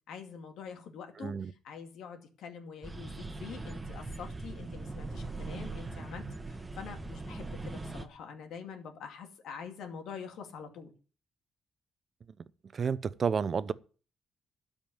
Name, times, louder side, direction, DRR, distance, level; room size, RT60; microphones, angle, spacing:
voice 1, 0.1-10.9, left 6 dB, 80° left, 2.5 m, -45 dB
voice 2, 1.2-1.5 12.7-13.7, right 6 dB, 45° right, 0.7 m, -30 dB
sound 1, 2.8-8.1, right 3 dB, 20° right, 1.3 m, -41 dB
13.0 x 5.3 x 9.1 m
cardioid pair, 90°, 0 cm